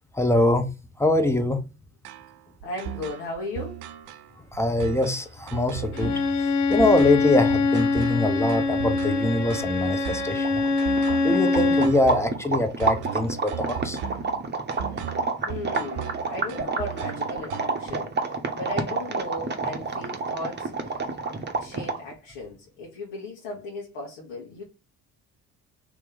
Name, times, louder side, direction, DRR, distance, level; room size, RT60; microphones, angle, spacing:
voice 1, 0.1-0.7 1.0-1.6 4.5-10.6 11.2-14.0, left 2 dB, 5° left, 0.8 m, -23 dB
sound 1, 2.0-17.9, right 11 dB, 65° right, 0.6 m, -37 dB
voice 2, 2.6-3.8 15.5-20.9 21.6-24.6, left 2 dB, 65° left, 1.4 m, -36 dB
Bowed string instrument, 5.9-12.0, left 3 dB, 90° left, 0.5 m, -24 dB
sound 2, 10.4-22.1, right 4 dB, 25° right, 0.9 m, -29 dB
3.0 x 3.0 x 3.7 m
hypercardioid pair, 50°, 45 cm